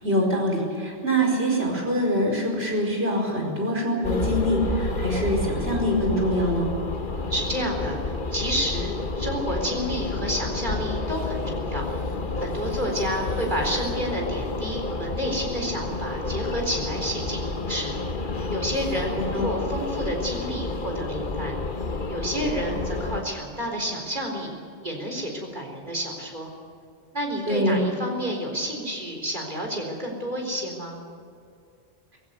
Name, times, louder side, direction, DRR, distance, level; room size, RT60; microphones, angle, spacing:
voice 1, 0.0-6.7 19.3-19.5 27.5-27.9, equal, 70° right, 0 dB, 5.3 m, -24 dB
sound 1, 4.0-23.2, left 3 dB, 50° left, 1.4 m, -30 dB
voice 2, 7.3-11.9 12.4-17.9 18.5-21.6 22.1-24.5 24.8-26.5 27.1-31.0, equal, 45° right, 0 dB, 4.3 m, -30 dB
20.0 x 16.0 x 9.5 m, 2.4 s
omnidirectional pair, 1.1 m